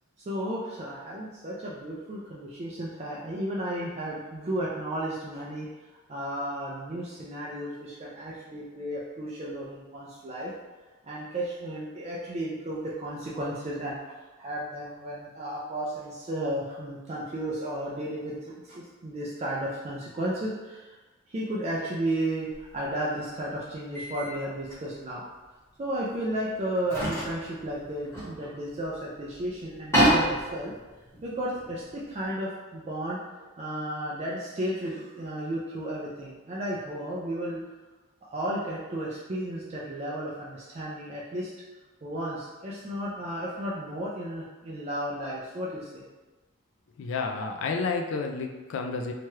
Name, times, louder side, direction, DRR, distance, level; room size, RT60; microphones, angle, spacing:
voice 1, 0.3-5.7 6.1-10.5 11.0-14.0 14.4-21.0 21.3-25.2 25.8-30.7 31.2-37.6 38.3-41.5 42.0-46.1, right 1 dB, 30° right, -5 dB, 0.3 m, -33 dB
sound 1, 22.5-22.7 23.9-24.3 24.7-24.8 26.1-26.2 26.8-29.0 29.3-29.4 29.7-32.1, right 1 dB, 10° left, 0.9 m, -28 dB
voice 2, 47.0-49.1, left 4 dB, 60° left, 3 dB, 0.3 m, -30 dB
2.9 x 2.3 x 3.1 m, 1.2 s
head